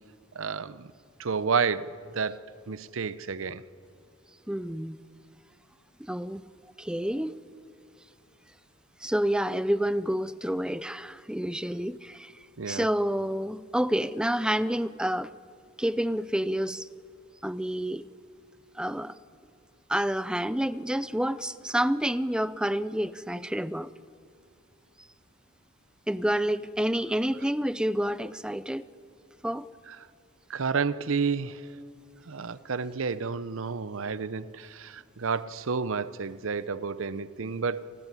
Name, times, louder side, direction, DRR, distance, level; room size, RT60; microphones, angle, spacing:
voice 1, 0.3-0.9 1.2-3.6 12.6-12.9 29.9-30.0 30.5-31.7 32.3-37.9, right 5 dB, 70° right, 0.7 m, -31 dB
voice 2, 4.5-5.0 6.0-6.4 6.8-7.3 9.0-12.3 12.7-15.3 15.8-16.9 17.4-18.0 18.8-19.2 19.9-23.9 26.1-28.9 29.4-29.7, equal, 5° right, 0.5 m, -28 dB
28.5 x 13.5 x 9.7 m
head